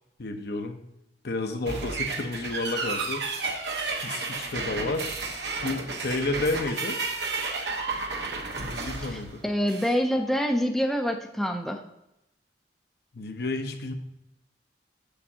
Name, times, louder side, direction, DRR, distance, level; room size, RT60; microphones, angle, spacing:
voice 1, 0.2-0.8 1.2-3.2 4.0-5.2 5.6-7.0 8.6-9.3 13.1-13.9, left 2 dB, 65° left, 5 dB, 0.8 m, -31 dB
sound 1, 1.7-10.0, right 3 dB, 70° right, 1.1 m, -32 dB
voice 2, 9.1-11.8, equal, ahead, 3 dB, 0.5 m, -26 dB
7.2 x 6.7 x 2.8 m, 0.85 s
head